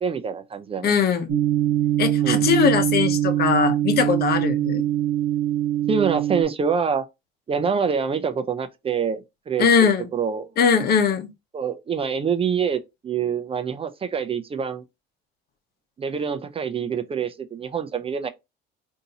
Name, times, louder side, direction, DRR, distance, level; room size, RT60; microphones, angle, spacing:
voice 1, 0.0-0.9 2.2-2.4 5.9-7.0 7.5-10.5 11.5-14.8 16.0-18.3, right 6 dB, 30° right, 0.5 m, -26 dB
voice 2, 0.8-1.3 2.0-4.8 9.6-10.1 10.6-11.3, left 6 dB, 50° left, 0.9 m, -20 dB
sound 1, 1.3-6.4, right 12 dB, 85° right, 1.0 m, -23 dB
5.1 x 2.7 x 2.8 m
cardioid pair, 115°, 20 cm